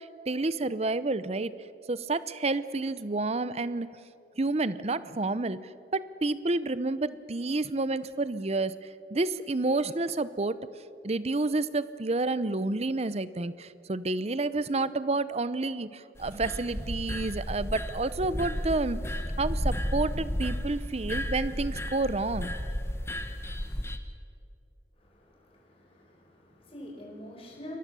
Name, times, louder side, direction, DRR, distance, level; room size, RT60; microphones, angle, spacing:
voice 1, 0.0-1.5 1.9-3.9 4.4-5.6 5.9-10.6 11.0-19.0 19.4-22.5, right 2 dB, 35° right, 15 dB, 0.7 m, -29 dB
sound 1, 16.2-24.0, equal, 15° left, 1.2 m, -33 dB
voice 2, 24.9-27.8, left 1 dB, 30° left, -1 dB, 5.1 m, -46 dB
27.5 x 21.5 x 7.0 m, 2.6 s
head